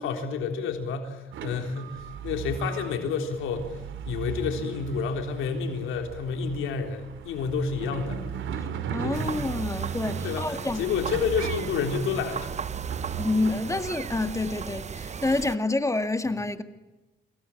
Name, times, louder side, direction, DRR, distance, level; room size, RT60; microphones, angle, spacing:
voice 1, 0.0-3.7 4.1-8.2 8.5-8.6 9.0-9.3 10.2-12.5, left 5 dB, 90° left, 3.7 m, -29 dB
sound 1, 1.3-14.3, right 7 dB, 75° right, 3.0 m, -37 dB
voice 2, 8.6-10.9 13.1-16.6, left 2 dB, 15° left, 2.0 m, -28 dB
sound 2, 9.1-15.6, right 6 dB, 35° right, 0.8 m, -36 dB
28.0 x 23.5 x 7.2 m
cardioid pair, 90°, 20 cm